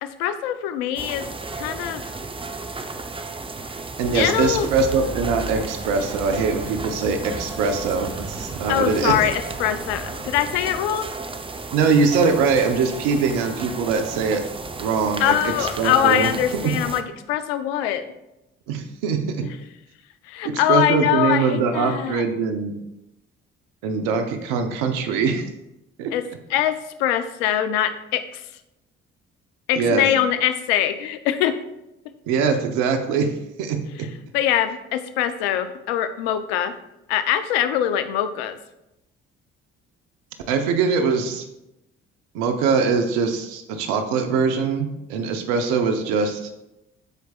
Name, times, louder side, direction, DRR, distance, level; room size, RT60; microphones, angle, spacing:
voice 1, 0.0-1.3 1.6-2.1 4.1-4.7 8.7-11.1 15.2-17.0 17.3-18.0 19.4-19.5 20.3-22.2 26.1-28.4 29.7-31.6 34.3-36.8 37.1-38.6, left 10 dB, 85° left, 11 dB, 0.6 m, -23 dB
sound 1, 1.0-17.0, right 3 dB, 20° right, 0.7 m, -34 dB
sound 2, 4.0-10.6, right 2 dB, 55° right, 1.6 m, -36 dB
voice 2, 4.0-9.1 11.7-14.4 14.8-16.3 16.6-16.7 18.7-19.4 20.4-22.7 23.8-25.5 26.0-26.1 29.7-30.1 32.3-33.3 33.6-33.8 40.5-41.4 42.3-46.5, right 5 dB, 80° right, 6 dB, 0.9 m, -22 dB
13.5 x 4.7 x 2.4 m, 0.90 s
hypercardioid pair, 55°, 29 cm